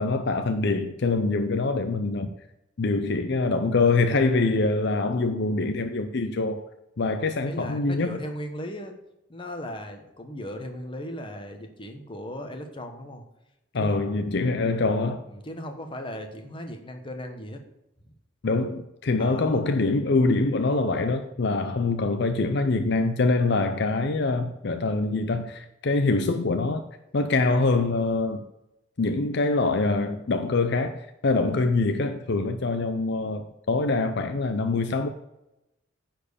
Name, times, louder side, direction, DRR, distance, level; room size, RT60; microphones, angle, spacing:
voice 1, 0.0-2.3 2.8-6.7 7.0-8.2 13.7-15.2 18.4-26.8 27.1-28.4 29.0-35.1, left 3 dB, 60° left, 0.6 m, -24 dB
voice 2, 7.5-8.9 9.3-13.2 13.7-14.1 15.3-17.6 19.2-19.6, equal, 25° left, 1.3 m, -37 dB
10.0 x 4.5 x 7.0 m
head